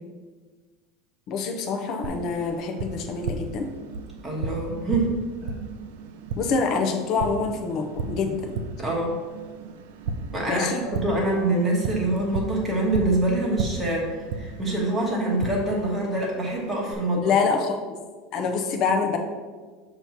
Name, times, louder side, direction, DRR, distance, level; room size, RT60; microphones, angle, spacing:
voice 1, 1.3-3.7 6.4-8.5 10.5-10.8 17.2-18.0 18.3-19.2, left 5 dB, 35° left, 4 dB, 0.6 m, -26 dB
Tap, 2.0-16.9, right 4 dB, 80° right, 0.5 m, -35 dB
voice 2, 4.2-5.1 5.4-5.5 8.8-9.1 10.3-14.1 14.3-17.3, right 2 dB, 5° right, -4 dB, 1.2 m, -25 dB
6.8 x 3.0 x 5.7 m, 1.4 s
cardioid pair, 175°, 0 cm